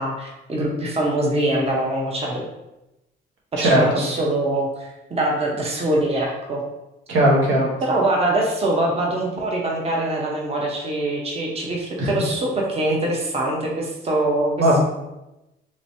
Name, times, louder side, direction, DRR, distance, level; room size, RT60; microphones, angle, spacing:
voice 1, 0.0-2.5 3.6-6.6 7.8-14.7, right 1 dB, 30° right, -2 dB, 0.8 m, -23 dB
voice 2, 3.6-4.0 7.1-7.7 12.0-12.1 14.6-14.8, right 1 dB, 80° right, -3 dB, 0.9 m, -17 dB
3.2 x 3.0 x 2.7 m, 0.95 s
cardioid pair, 90°, 20 cm